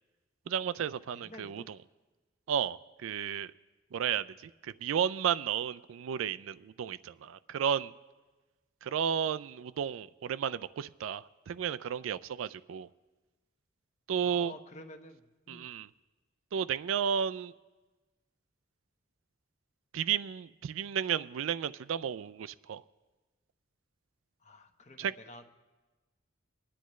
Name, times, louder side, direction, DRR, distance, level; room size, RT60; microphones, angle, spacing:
voice 1, 0.5-1.8 2.5-3.5 3.9-7.9 8.8-12.9 14.1-14.5 15.5-15.9 16.5-17.5 19.9-22.8 25.0-25.1, right 8 dB, 80° right, 14 dB, 0.3 m, -33 dB
voice 2, 1.1-1.7 14.2-15.7 24.4-25.4, left 1 dB, 35° left, 6 dB, 0.9 m, -50 dB
25.0 x 10.0 x 3.1 m, 1.2 s
head